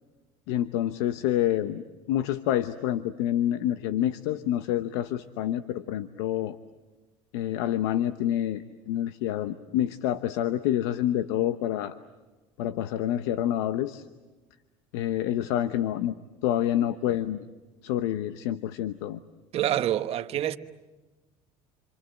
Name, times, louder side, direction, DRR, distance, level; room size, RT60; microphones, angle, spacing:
voice 1, 0.5-1.8 2.1-6.6 7.3-12.0 12.6-14.0 14.9-16.1 16.4-17.5 17.8-19.2, left 12 dB, 90° left, 1.0 m, -27 dB
voice 2, 19.5-20.6, right 12 dB, 50° right, 1.2 m, -26 dB
28.5 x 27.0 x 7.7 m
cardioid pair, 125°, 14 cm